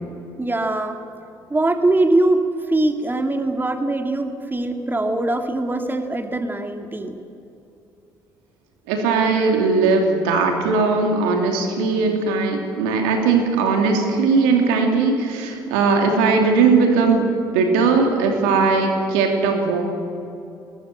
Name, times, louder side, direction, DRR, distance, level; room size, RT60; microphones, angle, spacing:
voice 1, 0.4-1.0 1.5-7.2, right 2 dB, 20° right, 6 dB, 2.3 m, -22 dB
voice 2, 8.9-19.8, right 4 dB, 80° right, 3 dB, 2.9 m, -19 dB
20.0 x 19.5 x 8.1 m, 2.8 s
hypercardioid pair, 50°, 11 cm